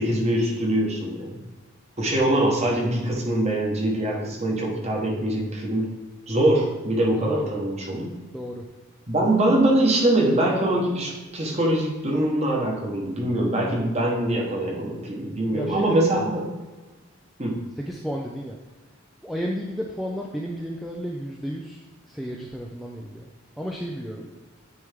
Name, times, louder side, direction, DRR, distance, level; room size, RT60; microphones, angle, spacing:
voice 1, 0.0-1.4 2.0-5.9 6.3-8.1 9.1-16.4 17.4-17.6, right 1 dB, 30° right, -1 dB, 1.2 m, -23 dB
voice 2, 7.2-7.6 8.3-8.6 15.5-16.3 17.8-18.6 19.2-23.3 23.6-24.2, equal, ahead, -2 dB, 0.4 m, -32 dB
9.4 x 3.5 x 3.5 m, 1.2 s
head